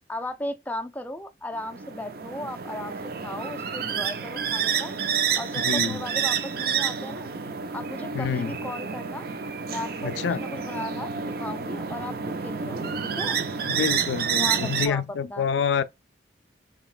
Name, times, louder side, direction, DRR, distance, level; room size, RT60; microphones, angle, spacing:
voice 1, 0.1-4.9 5.4-7.3 7.7-9.3 9.7-11.1 11.4-13.4 14.3-15.0 15.3-15.5, left 1 dB, 10° left, 0.3 m, -36 dB
sound 1, 1.6-14.9, right 7 dB, 55° right, 0.5 m, -29 dB
voice 2, 5.6-6.0 8.1-8.6 10.0-10.4 13.6-15.8, left 7 dB, 85° left, 0.4 m, -27 dB
5.1 x 2.9 x 2.4 m
head